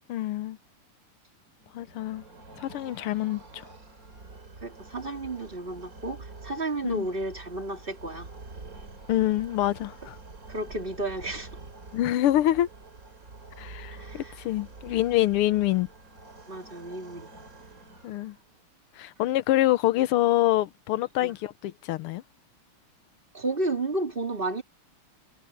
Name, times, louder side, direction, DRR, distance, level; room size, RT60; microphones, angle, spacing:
voice 1, 0.1-0.6 1.7-2.2 2.6-3.6 6.8-7.1 9.1-10.2 11.9-12.7 13.6-15.9 18.0-18.4 19.0-22.2, left 14 dB, 85° left, 1.7 m, -26 dB
sound 1, 1.6-18.6, right 3 dB, 40° right, 3.4 m, -47 dB
voice 2, 4.6-8.3 10.5-11.5 13.9-14.3 16.5-17.3 21.2-21.4 23.3-24.6, right 2 dB, 25° right, 3.0 m, -32 dB
omnidirectional pair, 2.4 m